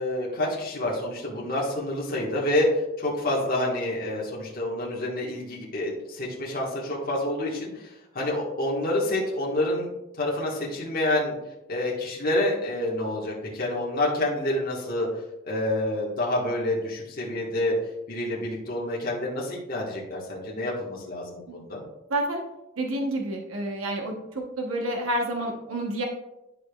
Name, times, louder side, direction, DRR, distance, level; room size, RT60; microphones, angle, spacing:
voice 1, 0.0-2.7 3.0-9.9 10.2-11.3 11.7-15.1 15.4-17.7 18.1-21.8, left 1 dB, 45° left, -4 dB, 1.4 m, -28 dB
voice 2, 21.5-21.8 22.1-22.4 22.8-26.0, right 1 dB, 80° right, 2 dB, 1.0 m, -29 dB
11.0 x 4.9 x 2.3 m, 0.94 s
head